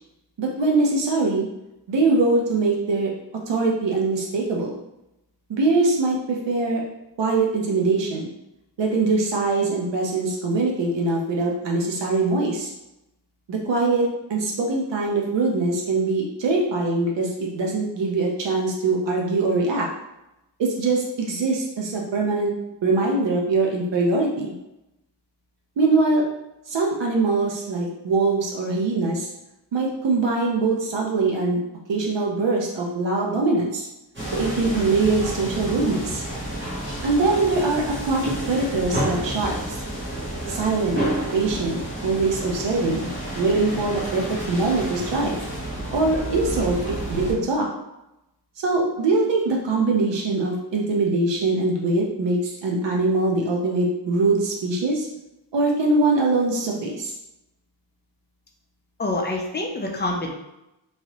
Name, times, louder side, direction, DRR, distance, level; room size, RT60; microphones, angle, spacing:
voice 1, 0.4-1.5 1.9-3.1 3.5-4.7 5.5-6.8 7.2-8.3 8.8-12.7 13.5-19.9 20.6-22.5 22.8-24.5 25.8-26.2 26.7-29.3 29.7-31.6 31.9-33.9 34.3-36.2 37.0-39.8 40.5-41.0 41.3-43.1 43.3-45.3 45.9-47.7 48.6-55.1 55.5-57.1, right 3 dB, 80° right, -1 dB, 0.7 m, -22 dB
sound 1, 34.1-47.3, right 1 dB, 25° right, 1.2 m, -30 dB
voice 2, 59.0-60.3, left 2 dB, 25° left, 1 dB, 0.5 m, -26 dB
3.1 x 2.8 x 2.9 m, 0.90 s
wide cardioid pair, 145°, 43 cm